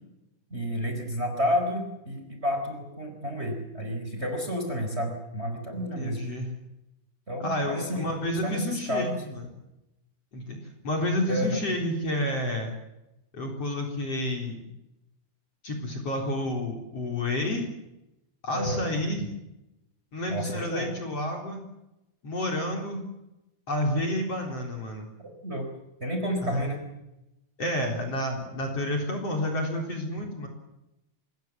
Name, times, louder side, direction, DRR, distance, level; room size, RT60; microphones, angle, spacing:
voice 1, 0.5-6.2 7.3-8.1 8.4-9.2 11.3-11.6 18.5-18.8 20.3-20.9 25.2-25.7 26.0-26.8, equal, 15° right, 4 dB, 4.4 m, -30 dB
voice 2, 5.9-6.5 7.4-9.5 10.3-10.6 10.8-12.7 13.3-14.7 15.6-17.7 18.4-19.3 20.1-21.6 22.2-23.0 23.7-25.1 26.4-26.7 27.6-30.5, left 1 dB, 35° left, 2 dB, 4.6 m, -30 dB
26.0 x 21.0 x 7.5 m, 0.92 s
omnidirectional pair, 4.8 m